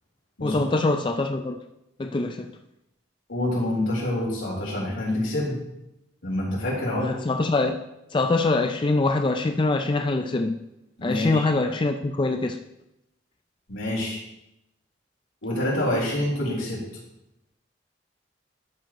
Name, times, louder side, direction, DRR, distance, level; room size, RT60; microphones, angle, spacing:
voice 1, 0.4-1.6 2.0-2.5 7.0-7.8 8.1-10.6 11.0-12.6, left 2 dB, 25° left, 6 dB, 0.4 m, -24 dB
voice 2, 3.3-5.6 6.2-7.1 11.0-11.4 13.7-14.2 15.4-16.8, left 1 dB, 90° left, -5 dB, 3.8 m, -26 dB
11.5 x 7.6 x 3.0 m, 0.86 s
head